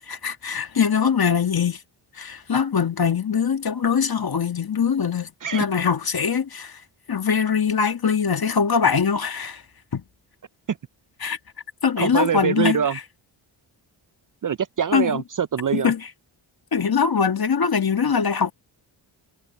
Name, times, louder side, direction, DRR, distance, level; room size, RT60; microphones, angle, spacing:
voice 1, 0.1-1.8 2.2-6.7 7.1-9.6 9.9-10.0 11.2-11.4 11.8-12.8 14.9-15.2 15.7-16.0 16.7-18.5, left 6 dB, 45° left, 1.8 m, -22 dB
voice 2, 12.0-13.0 14.4-15.9, right 8 dB, 40° right, 0.6 m, -24 dB
cardioid pair, 50°, 49 cm